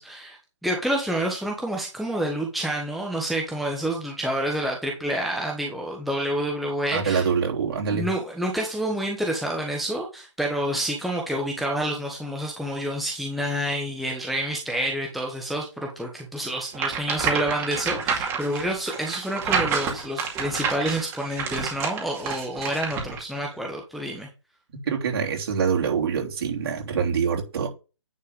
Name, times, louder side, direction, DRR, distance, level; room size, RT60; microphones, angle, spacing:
voice 1, 0.0-7.3 7.9-24.3, right 1 dB, ahead, -1 dB, 1.1 m, -28 dB
voice 2, 6.9-8.1 24.9-27.7, right 6 dB, 50° right, 0 dB, 3.3 m, -25 dB
sound 1, 16.7-23.2, right 6 dB, 15° right, 2.3 m, -28 dB
9.9 x 4.5 x 5.3 m, 0.31 s
hypercardioid pair, 155°, 16 cm